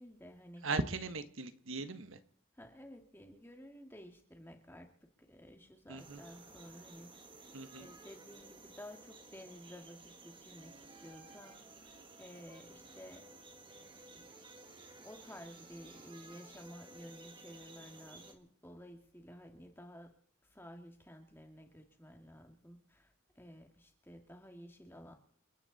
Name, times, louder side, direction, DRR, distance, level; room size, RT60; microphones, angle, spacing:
voice 1, 0.0-0.7 2.5-4.9 5.3-7.5 7.8-11.9 12.2-13.3 14.1-14.2 15.0-20.1 20.4-25.2, equal, 10° left, 4 dB, 2.1 m, -53 dB
voice 2, 0.6-2.2 5.9-6.2 7.5-7.9, right 3 dB, 75° right, 10 dB, 1.3 m, -38 dB
sound 1, 6.0-18.3, right 3 dB, 25° right, 1.6 m, -55 dB
29.5 x 10.0 x 4.2 m, 0.63 s
head